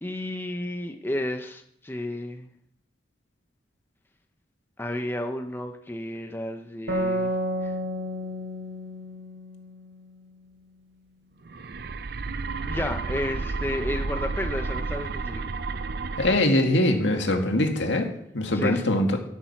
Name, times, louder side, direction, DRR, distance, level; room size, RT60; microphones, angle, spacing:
voice 1, 0.0-2.5 4.8-7.3 7.6-7.7 12.7-15.6 18.5-18.8, left 1 dB, 10° left, 5 dB, 0.6 m, -32 dB
sound 1, 6.9-10.4, equal, 75° right, 2.8 m, -31 dB
sound 2, 11.4-16.4, right 4 dB, 55° right, 0.5 m, -31 dB
voice 2, 16.2-18.1 18.3-19.2, left 1 dB, 75° left, 3 dB, 1.9 m, -22 dB
13.0 x 8.8 x 5.9 m, 0.77 s
head